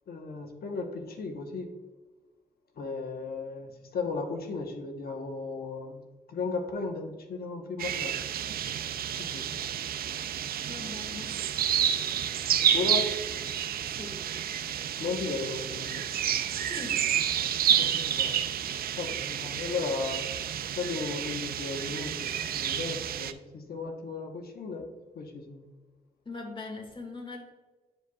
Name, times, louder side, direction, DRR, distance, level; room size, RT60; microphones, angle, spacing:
voice 1, 0.1-1.7 2.8-6.0 6.3-8.2 9.2-9.4 12.7-13.1 15.0-16.0 17.4-18.4 19.0-20.3 20.8-24.8 25.1-25.6, left 4 dB, 70° left, 4 dB, 1.1 m, -35 dB
sound 1, 7.8-23.3, right 9 dB, 70° right, 0.4 m, -30 dB
voice 2, 10.6-11.4 13.8-14.2 16.6-17.1 26.3-27.5, left 3 dB, 30° left, 2 dB, 1.8 m, -41 dB
9.7 x 5.0 x 2.3 m, 1.3 s
cardioid pair, 60°, 16 cm